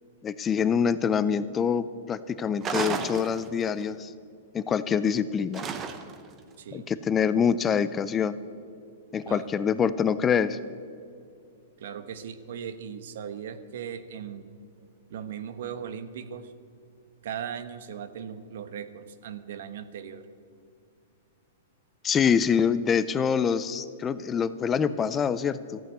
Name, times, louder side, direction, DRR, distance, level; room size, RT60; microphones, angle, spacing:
voice 1, 0.2-4.1 4.5-5.6 6.7-8.4 9.1-10.6 22.0-25.8, left 7 dB, 15° left, 14 dB, 0.4 m, -25 dB
sound 1, 2.6-3.8 5.5-6.3, right 6 dB, 20° right, 0.8 m, -32 dB
voice 2, 6.6-6.9 9.3-9.5 11.8-14.5 15.1-16.5 17.2-20.2, right 8 dB, 65° right, 12 dB, 1.1 m, -38 dB
14.0 x 9.1 x 8.3 m, 2.4 s
hypercardioid pair, 160°, 0 cm